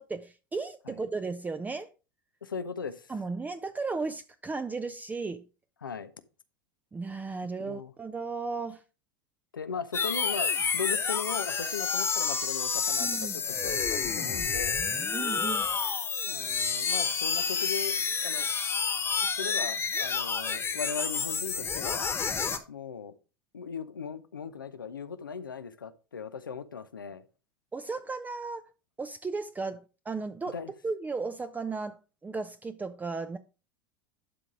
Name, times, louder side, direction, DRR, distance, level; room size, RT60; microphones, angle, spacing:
voice 1, 0.0-1.9 3.1-5.4 6.9-8.8 13.0-13.4 15.1-15.7 27.7-28.6 29.0-30.6 30.8-33.4, right 4 dB, 15° right, 0.6 m, -35 dB
voice 2, 2.4-3.1 5.8-6.1 7.6-7.9 9.5-14.8 16.3-18.5 19.2-22.1 22.7-23.1 23.5-27.2 30.5-30.7, left 6 dB, 90° left, 0.8 m, -38 dB
sound 1, 9.9-22.6, left 5 dB, 25° left, 1.3 m, -29 dB
11.5 x 3.9 x 4.8 m
hypercardioid pair, 85°, 11 cm